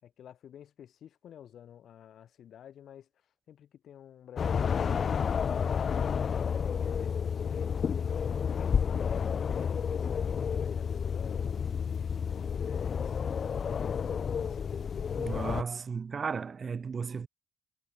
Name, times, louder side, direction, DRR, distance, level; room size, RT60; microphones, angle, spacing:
voice 1, 0.0-14.7, left 10 dB, 70° left, 6.0 m, -51 dB
sound 1, 4.4-15.6, left 7 dB, 55° left, 0.4 m, -30 dB
voice 2, 15.2-17.3, right 5 dB, 45° right, 0.5 m, -35 dB
cardioid pair, 70°, 0 cm